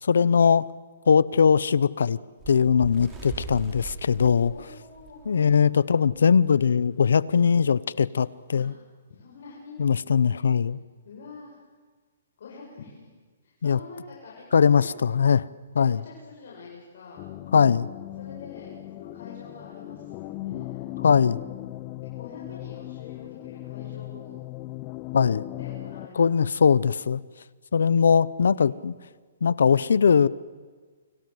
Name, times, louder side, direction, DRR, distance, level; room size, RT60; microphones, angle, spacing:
voice 1, 0.0-0.6 1.1-2.2 2.5-4.5 5.3-8.7 9.8-10.8 13.6-13.8 14.5-15.5 15.8-16.0 17.5-17.9 21.0-21.4 25.1-25.4 26.2-27.2 27.7-28.9 29.4-30.3, left 6 dB, 85° left, 20 dB, 0.9 m, -20 dB
Bird, 2.4-5.6 6.0-6.2 6.5-6.7 7.5-7.6, right 4 dB, 15° right, 5.1 m, -40 dB
voice 2, 4.5-5.6 8.5-8.7 9.1-9.9 11.0-11.6 12.4-13.1 13.4-14.9 15.9-17.3 18.2-20.9 22.0-24.4 25.5-26.2 28.5-28.7, left 4 dB, 60° left, -4 dB, 8.0 m, -46 dB
sound 1, 17.2-26.1, left 17 dB, 30° left, 0.8 m, -38 dB
29.5 x 25.0 x 8.0 m, 1.5 s
hypercardioid pair, 160°, 0 cm